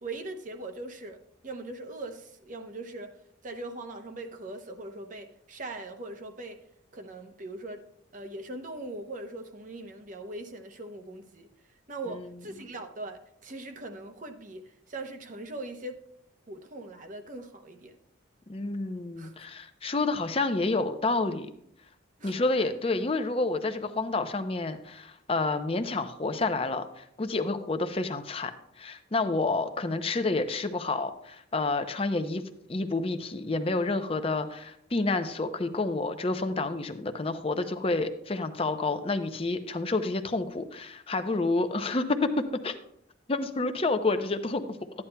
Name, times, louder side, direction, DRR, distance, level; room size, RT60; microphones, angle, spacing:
voice 1, 0.0-1.2 1.4-3.1 3.4-6.6 6.9-7.9 8.1-11.5 11.9-16.0 16.5-18.0 19.2-19.3 22.2-22.3, right 2 dB, 40° right, 0.7 m, -40 dB
voice 2, 18.5-21.5 22.2-28.5 28.8-32.4 32.7-42.3 42.6-42.8 43.3-44.8, left 3 dB, 30° left, 0.5 m, -29 dB
12.5 x 9.7 x 2.2 m
head